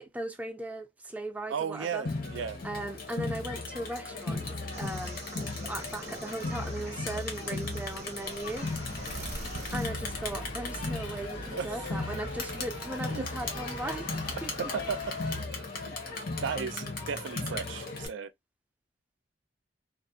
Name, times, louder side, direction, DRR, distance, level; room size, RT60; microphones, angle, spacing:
voice 1, 0.0-2.1 2.6-4.5 4.8-8.7 9.7-14.7, right 1 dB, 10° right, 0.4 m, -38 dB
voice 2, 1.5-2.6 9.0-9.3 11.5-11.7 13.1-13.3 14.6-15.1 15.8-15.9 16.4-18.3, right 6 dB, 80° right, 0.4 m, -35 dB
Crowd, 2.0-18.1, left 3 dB, 55° left, 0.8 m, -36 dB
sound 1, 4.7-9.9, right 3 dB, 35° right, 0.7 m, -45 dB
sound 2, 8.5-15.4, equal, 90° left, 1.2 m, -43 dB
2.5 x 2.1 x 2.7 m
head